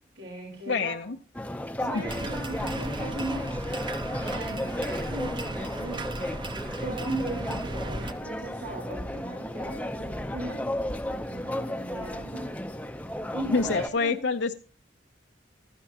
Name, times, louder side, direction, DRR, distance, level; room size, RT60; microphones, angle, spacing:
voice 1, 0.2-1.1 1.8-3.6 4.2-6.4 6.8-12.5 13.3-14.2, right 1 dB, 80° right, -2 dB, 4.3 m, -38 dB
voice 2, 0.7-1.2 1.9-2.0 13.5-14.6, left 4 dB, 75° left, 5 dB, 0.7 m, -26 dB
sound 1, 1.3-13.9, left 1 dB, 10° left, 0.6 m, -34 dB
sound 2, 2.1-8.1, right 2 dB, 25° right, 0.7 m, -36 dB
15.5 x 13.0 x 2.8 m, 0.37 s
head